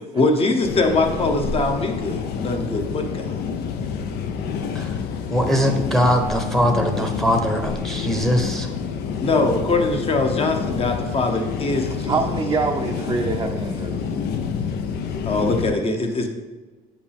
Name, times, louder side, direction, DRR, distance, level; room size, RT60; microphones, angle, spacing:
voice 1, 0.1-3.3 9.2-12.2 15.2-16.3, left 2 dB, 35° left, 4 dB, 1.0 m, -22 dB
sound 1, 0.6-15.7, left 6 dB, 75° left, 0.6 m, -28 dB
voice 2, 5.3-8.7, equal, ahead, 4 dB, 0.9 m, -21 dB
voice 3, 12.0-14.1, right 4 dB, 20° right, 1 dB, 0.5 m, -25 dB
7.8 x 5.0 x 3.5 m, 1.3 s
cardioid pair, 110°, 17 cm